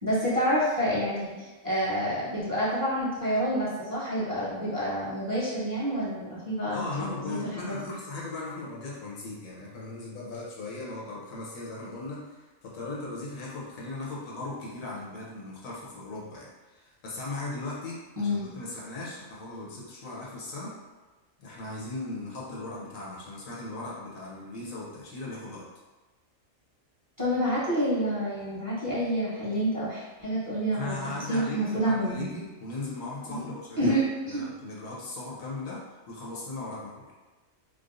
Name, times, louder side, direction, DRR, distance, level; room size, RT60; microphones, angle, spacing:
voice 1, 0.0-7.9 18.2-18.5 27.2-30.9 31.3-32.4 33.3-33.4 33.8-34.4, equal, 15° right, -9 dB, 0.9 m, -28 dB
voice 2, 6.7-20.7 21.4-25.6 30.7-34.0 34.3-35.8 36.1-37.0, left 2 dB, 80° left, -4 dB, 1.3 m, -38 dB
4.7 x 2.1 x 2.6 m, 1.2 s
omnidirectional pair, 1.4 m